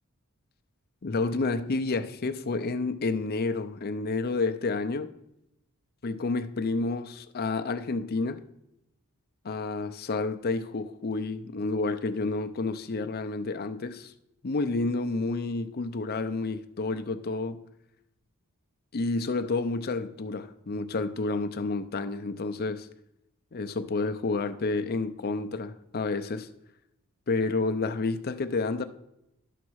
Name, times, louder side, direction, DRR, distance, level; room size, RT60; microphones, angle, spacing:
voice 1, 1.0-5.1 6.0-8.4 9.4-14.1 14.4-17.6 18.9-22.9 23.5-26.5 27.3-28.8, left 3 dB, 45° left, 0.6 m, -30 dB
11.5 x 4.1 x 6.3 m
head